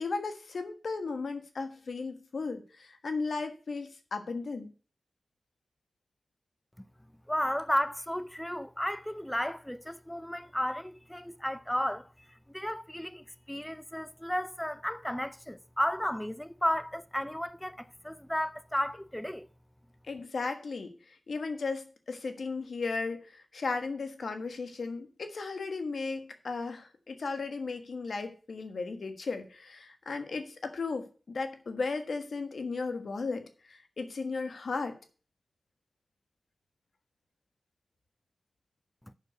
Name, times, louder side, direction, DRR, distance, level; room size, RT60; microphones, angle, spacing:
voice 1, 0.0-4.7 20.1-35.0, left 4 dB, 80° left, 1.4 m, -35 dB
voice 2, 7.3-12.1 12.5-19.5, equal, 10° left, 0.6 m, -33 dB
7.2 x 6.6 x 7.7 m
cardioid pair, 45°, 0 cm